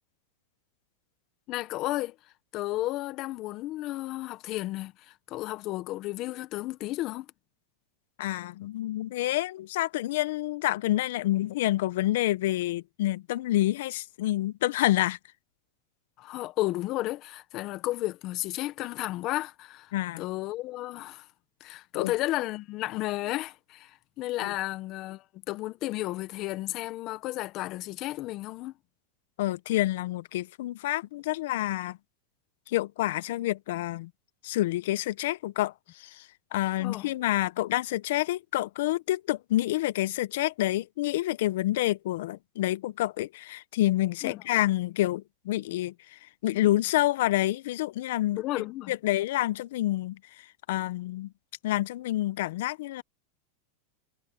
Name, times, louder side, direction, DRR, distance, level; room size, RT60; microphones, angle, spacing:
voice 1, 1.5-2.1 2.5-7.2 16.2-21.3 21.6-28.7 36.8-37.1 44.2-44.4 48.4-48.9, left 17 dB, 45° left, 1.3 m, -33 dB
voice 2, 8.2-15.2 19.9-20.2 21.9-22.1 24.4-24.5 29.4-32.0 32.7-34.1 34.4-51.3 51.6-53.0, left 15 dB, 70° left, 0.8 m, -28 dB
hypercardioid pair, 115°, 0 cm